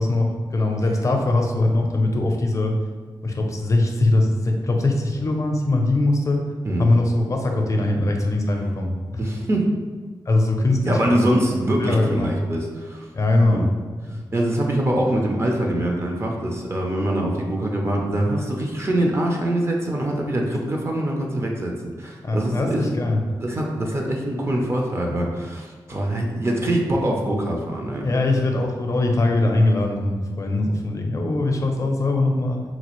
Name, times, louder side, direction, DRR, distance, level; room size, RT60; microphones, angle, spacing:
voice 1, 0.0-2.7 3.2-6.4 6.8-9.2 10.3-11.0 11.8-12.3 13.1-13.7 14.1-14.2 22.2-23.2 28.0-32.6, left 2 dB, 40° left, 2 dB, 0.5 m, -21 dB
voice 2, 9.2-9.7 10.8-13.1 13.4-13.7 14.3-22.9 23.4-28.0, right 1 dB, 30° right, 0 dB, 0.5 m, -24 dB
4.0 x 2.4 x 3.0 m, 1.5 s
wide cardioid pair, 135°, 8 cm